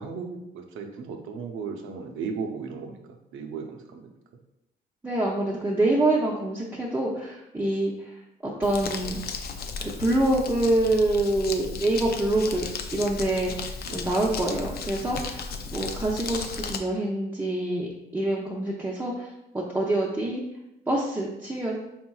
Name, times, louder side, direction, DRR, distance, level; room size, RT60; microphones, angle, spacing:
voice 1, 0.0-4.1 13.8-14.2, right 5 dB, 85° right, 4 dB, 0.6 m, -36 dB
voice 2, 5.0-8.1 8.4-9.2 9.8-12.6 12.9-15.4 15.7-19.3 19.5-20.4 20.9-21.8, right 1 dB, 10° right, -4 dB, 0.6 m, -26 dB
Crumpling crinkling, 8.6-16.8, left 5 dB, 50° left, 0.4 m, -35 dB
4.4 x 3.5 x 2.3 m, 0.87 s
cardioid pair, 90°, 20 cm